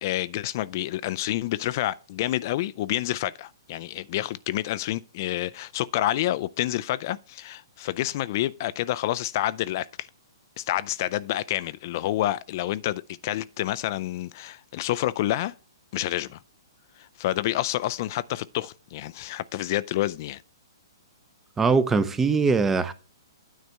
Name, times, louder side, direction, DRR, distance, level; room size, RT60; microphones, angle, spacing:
voice 1, 0.0-10.1 10.6-15.5 15.9-16.4 17.0-20.4, left 14 dB, 45° left, 0.3 m, -28 dB
voice 2, 21.6-22.9, right 4 dB, 10° right, 0.6 m, -21 dB
9.4 x 3.3 x 6.5 m
hypercardioid pair, 130°, 2 cm